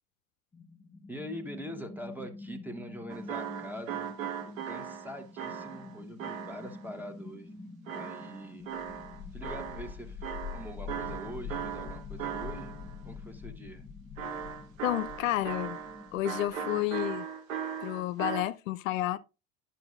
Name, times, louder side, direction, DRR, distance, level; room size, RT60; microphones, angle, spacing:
sound 1, 0.5-17.1, left 4 dB, 20° left, 0.9 m, -45 dB
voice 1, 1.1-4.1 4.4-7.6 7.9-8.7 9.3-12.7 13.0-13.9, equal, 5° right, 1.2 m, -44 dB
sound 2, 3.1-6.8 7.9-9.9 10.2-12.9 14.2-18.4, right 8 dB, 75° right, 1.1 m, -38 dB
voice 2, 14.8-15.8 16.1-17.2 17.8-19.2, left 14 dB, 70° left, 0.5 m, -30 dB
10.5 x 5.6 x 2.4 m
hypercardioid pair, 75°, 40 cm